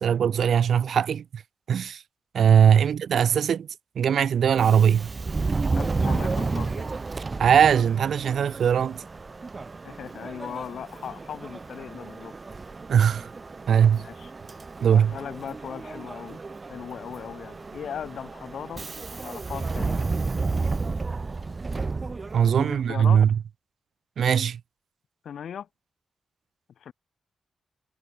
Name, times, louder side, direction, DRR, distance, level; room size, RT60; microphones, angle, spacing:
voice 1, 0.0-1.4 1.7-2.0 2.3-3.7 4.0-5.1 7.4-9.0 12.9-13.3 13.7-14.1 14.8-15.1 22.3-23.4 24.2-24.6, right 8 dB, 75° right, 0.9 m, -20 dB
Subway metro underground, 4.5-22.9, right 3 dB, 25° right, 1.2 m, -32 dB
voice 2, 5.7-7.0 9.8-12.3 13.9-14.3 14.9-16.4 16.7-20.0 22.4-23.2 25.2-25.7 26.8-26.9, left 8 dB, 85° left, 4.7 m, -38 dB
wide cardioid pair, 165°, 0 cm